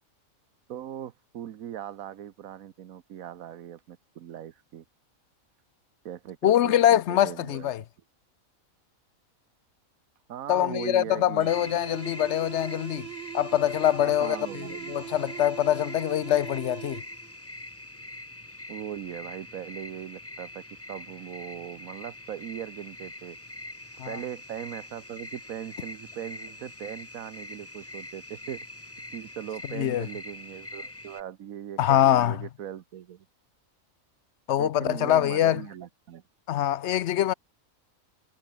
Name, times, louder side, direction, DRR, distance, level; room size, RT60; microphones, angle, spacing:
voice 1, 0.7-4.8 6.0-7.9 10.3-11.7 14.0-15.0 18.7-20.6 20.9-23.4 23.8-28.6 29.1-33.3 34.6-36.2, right 10 dB, 80° right, 1.3 m, -39 dB
voice 2, 6.4-7.8 10.5-13.1 13.3-17.0 24.0-24.2 29.7-30.1 31.8-32.4 34.5-35.6 36.5-37.3, left 11 dB, 65° left, 0.8 m, -24 dB
sound 1, 11.4-17.3, right 12 dB, 65° right, 0.7 m, -41 dB
sound 2, 11.5-31.2, left 1 dB, 10° left, 1.5 m, -43 dB
omnidirectional pair, 1.4 m